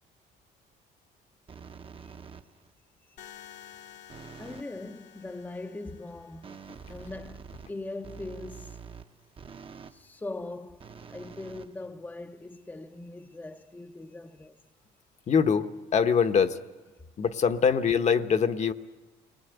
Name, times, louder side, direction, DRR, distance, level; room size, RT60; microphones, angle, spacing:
sound 1, 1.5-2.7 4.1-4.8 6.4-10.0 10.8-12.3, right 6 dB, 30° right, 0.9 m, -46 dB
sound 2, 3.2-7.2, left 10 dB, 85° left, 2.1 m, -51 dB
voice 1, 4.4-6.6 6.9-8.8 9.9-14.6 17.0-17.1, left 2 dB, 10° left, 0.7 m, -41 dB
voice 2, 15.3-16.6 17.2-18.7, left 6 dB, 45° left, 1.1 m, -23 dB
28.5 x 20.0 x 8.0 m
cardioid pair, 110°, 17 cm